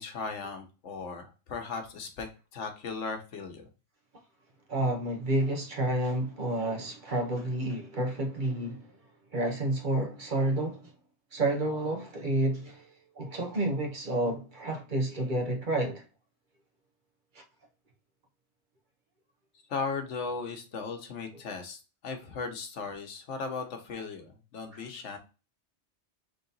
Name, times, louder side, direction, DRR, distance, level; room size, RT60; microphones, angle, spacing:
voice 1, 0.0-2.3 2.5-3.7 19.7-25.2, left 4 dB, 90° left, 1.2 m, -37 dB
voice 2, 4.7-8.9 9.3-10.8 11.3-16.0 24.7-24.9, right 1 dB, 45° right, 1.0 m, -30 dB
3.6 x 2.8 x 3.9 m
omnidirectional pair, 1.2 m